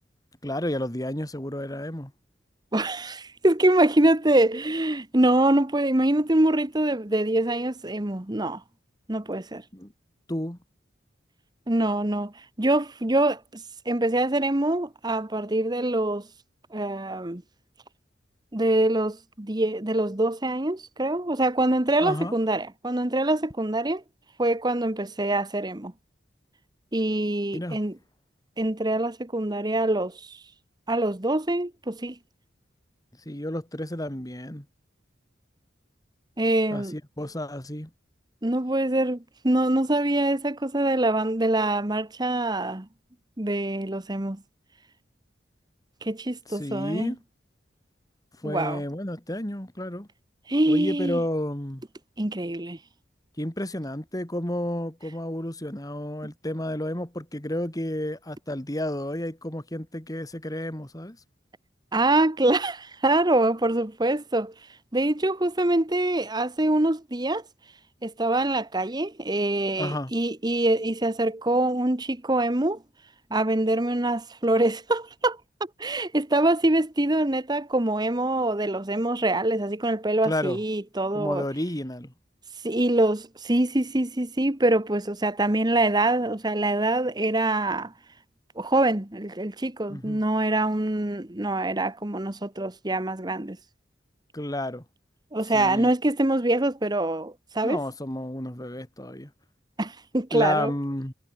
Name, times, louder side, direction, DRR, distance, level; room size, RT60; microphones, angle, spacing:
voice 1, 0.4-2.1 9.7-9.9 10.3-10.6 22.0-22.4 27.5-27.8 33.3-34.7 36.7-37.9 46.5-47.2 48.4-50.1 50.7-51.8 53.4-61.2 69.8-70.1 80.2-80.6 81.1-82.1 89.9-90.2 94.3-94.8 95.5-95.9 97.6-99.3 100.3-101.1, left 1 dB, 20° left, 2.7 m, -31 dB
voice 2, 2.7-8.6 9.1-9.6 11.7-16.3 16.7-17.4 18.5-24.0 24.4-25.9 26.9-27.9 28.6-30.4 30.9-32.2 36.4-36.9 38.4-39.2 39.4-42.9 43.4-44.4 46.0-47.1 48.4-48.8 50.5-51.2 52.2-52.8 61.9-64.5 64.9-67.4 68.0-72.8 73.3-75.4 75.8-81.4 82.6-87.9 88.6-93.6 95.3-97.8 99.8-100.7, right 1 dB, 20° right, 1.3 m, -24 dB
head